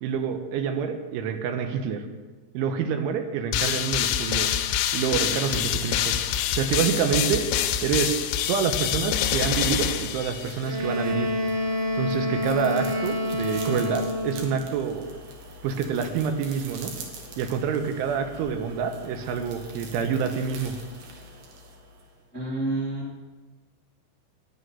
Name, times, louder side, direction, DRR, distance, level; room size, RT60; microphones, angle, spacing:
voice 1, 0.0-2.0 2.5-4.7 4.9-6.2 6.5-7.5 7.8-8.2 8.5-11.3 12.0-15.1 15.6-16.9 17.4-20.7, right 7 dB, 80° right, 6 dB, 3.3 m, -27 dB
sound 1, 3.5-10.8, left 10 dB, 85° left, 3.0 m, -26 dB
sound 2, 4.4-22.2, right 1 dB, 65° right, 2.9 m, -44 dB
Wind instrument woodwind instrument, 10.6-14.6, left 1 dB, 45° right, 3.3 m, -28 dB
voice 2, 22.3-23.3, right 2 dB, 10° left, -5 dB, 1.1 m, -30 dB
13.0 x 9.2 x 5.5 m, 1.3 s
omnidirectional pair, 5.5 m